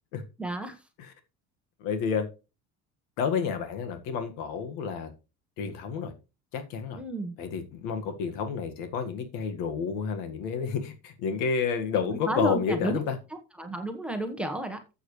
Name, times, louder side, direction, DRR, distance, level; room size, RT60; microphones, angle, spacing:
voice 1, 0.4-0.8 7.0-7.4 12.3-13.0 13.6-14.8, right 1 dB, 5° right, 1.3 m, -31 dB
voice 2, 1.8-2.3 3.2-5.1 5.6-6.1 6.5-7.0 7.4-13.2, left 6 dB, 85° left, 1.8 m, -30 dB
12.0 x 7.9 x 3.2 m
cardioid pair, 150°, 32 cm